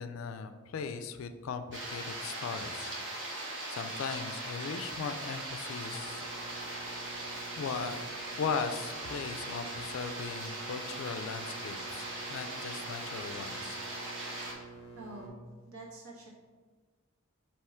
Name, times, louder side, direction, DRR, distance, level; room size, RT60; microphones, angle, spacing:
voice 1, 0.0-2.9 3.7-6.2 7.6-8.0 8.4-13.8, left 5 dB, 65° left, 9 dB, 0.3 m, -38 dB
sound 1, 1.7-14.5, right 1 dB, 60° right, 0.9 m, -40 dB
sound 2, 5.9-15.3, right 3 dB, 25° left, 0.7 m, -49 dB
voice 2, 15.0-15.3 15.7-16.3, right 2 dB, 90° right, -2 dB, 1.1 m, -46 dB
3.5 x 2.9 x 4.3 m, 1.4 s
head